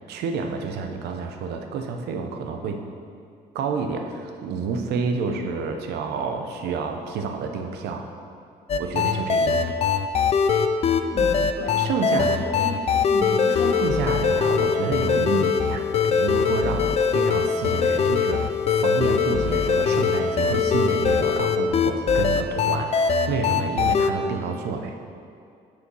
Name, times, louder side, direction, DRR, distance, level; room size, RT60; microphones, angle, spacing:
voice 1, 0.1-2.8 3.5-8.1 8.8-9.7 11.8-12.4 13.8-25.0, right 5 dB, 75° right, 5 dB, 0.8 m, -29 dB
sound 1, 8.7-24.1, left 6 dB, 35° left, 0.4 m, -22 dB
voice 2, 11.1-13.8, left 1 dB, 70° left, -6 dB, 2.1 m, -34 dB
6.8 x 5.0 x 6.1 m, 2.4 s
cardioid pair, 110°, 17 cm